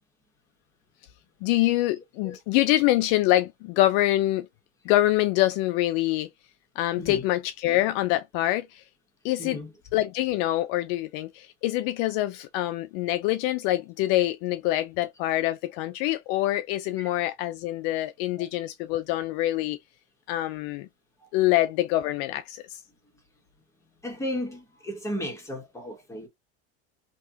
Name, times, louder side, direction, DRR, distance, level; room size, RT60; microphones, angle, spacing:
voice 1, 1.4-4.5 4.9-6.3 6.8-8.8 9.2-9.6 9.9-19.8 20.3-20.9 21.3-22.8, left 15 dB, 60° left, 0.5 m, -25 dB
voice 2, 9.4-9.7 18.4-18.5 24.0-26.3, left 1 dB, 10° left, 1.5 m, -34 dB
3.2 x 2.9 x 2.7 m
supercardioid pair, 125°, 34 cm